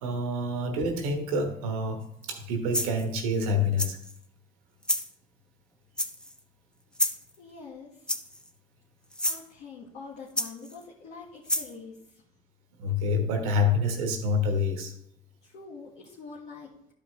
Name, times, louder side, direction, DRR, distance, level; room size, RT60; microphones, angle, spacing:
voice 1, 0.0-4.0 12.8-14.9, left 2 dB, 90° right, 4 dB, 1.2 m, -27 dB
sound 1, 2.2-2.4 2.7-3.1 3.8-4.2 4.8-5.1 6.0-6.4 6.9-7.3 8.1-8.5 9.1-9.4 10.4-10.8 11.5-11.7, equal, 5° left, 0.9 m, -29 dB
voice 2, 7.4-8.1 9.2-12.2 15.4-16.7, left 4 dB, 75° left, -6 dB, 1.6 m, -45 dB
12.0 x 5.2 x 3.2 m, 0.73 s
hypercardioid pair, 65°, 17 cm